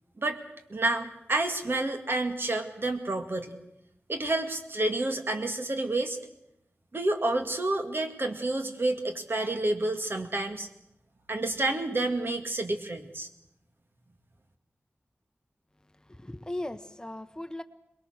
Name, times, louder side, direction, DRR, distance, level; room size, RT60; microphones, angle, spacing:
voice 1, 0.7-3.6 4.1-6.2 6.9-10.7 11.3-13.3, right 2 dB, 55° right, 6 dB, 2.1 m, -29 dB
voice 2, 16.1-17.6, left 1 dB, 15° left, 10 dB, 0.9 m, -37 dB
23.0 x 21.0 x 6.5 m, 0.81 s
wide cardioid pair, 65°, 5 cm